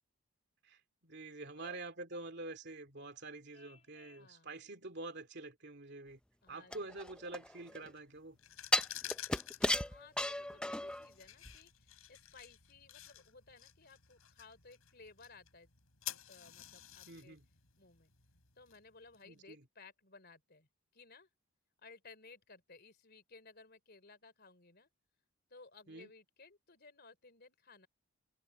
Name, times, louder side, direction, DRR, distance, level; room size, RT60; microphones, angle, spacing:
voice 1, 0.6-6.2 6.5-8.4 17.1-17.4 19.2-19.6 25.9-26.1, right 2 dB, 50° right, 2.8 m, -47 dB
Vehicle horn car horn honking, 3.5-4.3, left 5 dB, 30° left, 2.8 m, -64 dB
voice 2, 4.2-4.5 6.4-7.0 9.8-15.7 16.3-17.4 17.8-18.1 18.6-21.3 21.8-24.9 25.5-27.9, left 4 dB, 45° left, 3.6 m, -59 dB
sound 1, 6.7-7.9 8.7-11.1 11.4-11.5, left 1 dB, 5° left, 0.5 m, -34 dB
sound 2, 8.3-19.2, left 12 dB, 75° left, 6.5 m, -51 dB
head